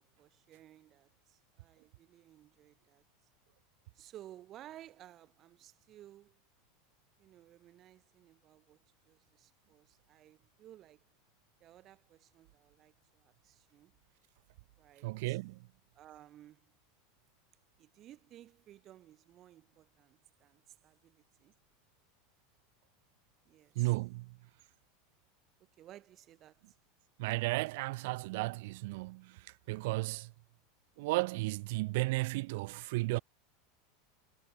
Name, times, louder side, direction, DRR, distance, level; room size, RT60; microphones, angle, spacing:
voice 1, 0.0-3.0 3.9-6.4 7.2-8.8 9.0-11.0 11.6-13.9 14.8-15.4 15.9-16.7 17.8-21.5 23.4-23.9 25.6-26.8, right 13 dB, 30° right, 3.2 m, -57 dB
voice 2, 15.0-15.6 23.8-24.4 27.2-30.3 31.0-33.2, right 23 dB, 60° right, 0.3 m, -34 dB
supercardioid pair, 160°, 0 cm